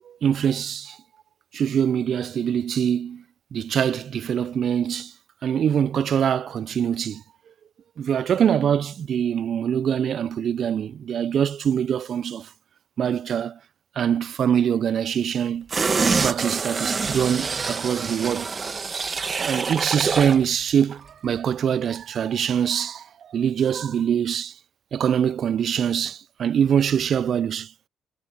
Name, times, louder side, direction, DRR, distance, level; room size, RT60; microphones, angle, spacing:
voice 1, 0.1-1.0 1.5-3.2 3.5-5.1 5.4-7.2 8.0-12.5 13.0-13.6 14.0-15.7 16.2-18.5 19.4-24.5 24.9-27.7, right 8 dB, 60° right, 0.3 m, -24 dB
sound 1, 15.7-20.5 20.8-20.9, right 4 dB, 35° right, 1.1 m, -26 dB
cardioid pair, 90°, 0 cm